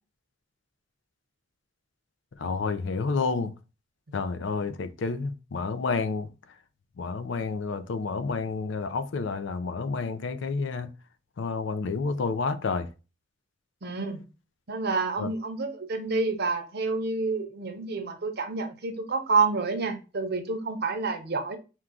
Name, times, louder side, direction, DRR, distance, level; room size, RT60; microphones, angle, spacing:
voice 1, 2.4-3.5 4.1-6.3 7.0-10.9 11.4-12.9 15.2-15.3, left 4 dB, 70° left, 0.4 m, -29 dB
voice 2, 13.8-14.3 14.7-21.6, right 4 dB, 55° right, 0.8 m, -28 dB
4.4 x 2.3 x 3.6 m
head